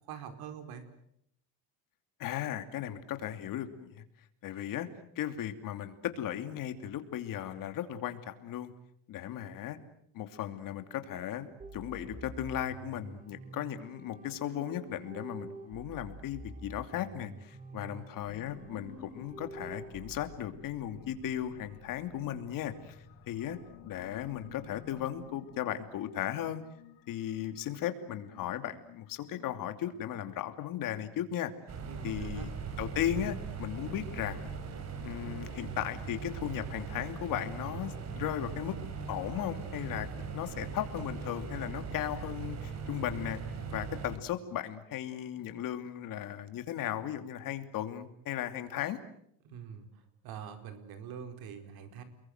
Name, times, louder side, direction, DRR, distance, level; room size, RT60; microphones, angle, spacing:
voice 1, 0.0-0.8 17.7-18.0 31.9-32.5 49.4-52.0, right 7 dB, 70° right, 8 dB, 4.7 m, -45 dB
voice 2, 2.2-3.9 4.4-4.9 5.2-8.7 9.1-9.8 10.1-22.9 23.3-23.6 23.8-26.6 27.1-31.5 32.0-32.5 32.8-34.5 35.0-38.8 39.1-40.1 40.3-43.4 43.7-49.0, left 11 dB, 55° left, 8 dB, 2.9 m, -36 dB
sound 1, 11.6-20.2, right 2 dB, 20° right, 3.2 m, -48 dB
sound 2, 18.2-30.1, left 9 dB, 85° left, 6.7 m, -54 dB
sound 3, 31.7-44.2, right 5 dB, 40° right, 4.2 m, -40 dB
30.0 x 22.0 x 7.9 m, 0.72 s
cardioid pair, 145°, 38 cm